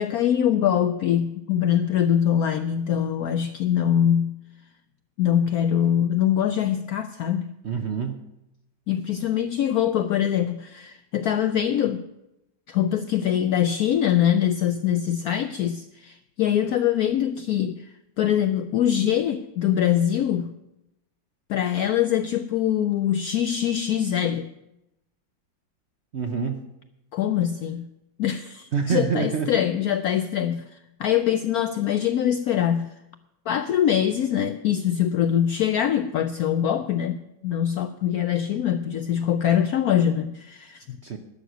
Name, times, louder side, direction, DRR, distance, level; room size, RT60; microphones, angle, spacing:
voice 1, 0.0-4.4 5.2-7.5 8.9-12.1 12.7-20.6 21.5-24.5 27.1-27.9 28.2-32.9 33.5-41.0, left 10 dB, 75° left, 10 dB, 0.8 m, -23 dB
voice 2, 7.6-8.2 26.1-26.6 28.7-29.6 41.0-41.2, right 6 dB, 50° right, 5 dB, 0.8 m, -26 dB
11.5 x 6.5 x 9.0 m, 0.89 s
omnidirectional pair, 2.1 m